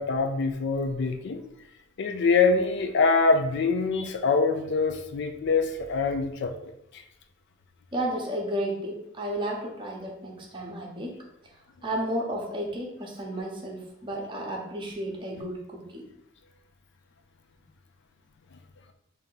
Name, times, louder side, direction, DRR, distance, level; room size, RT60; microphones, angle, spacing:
voice 1, 0.0-1.4 2.0-7.0, left 4 dB, 60° left, 5 dB, 0.4 m, -24 dB
voice 2, 7.9-11.1 11.8-16.0, right 1 dB, 25° right, -2 dB, 0.8 m, -32 dB
3.4 x 2.7 x 3.9 m, 0.78 s
head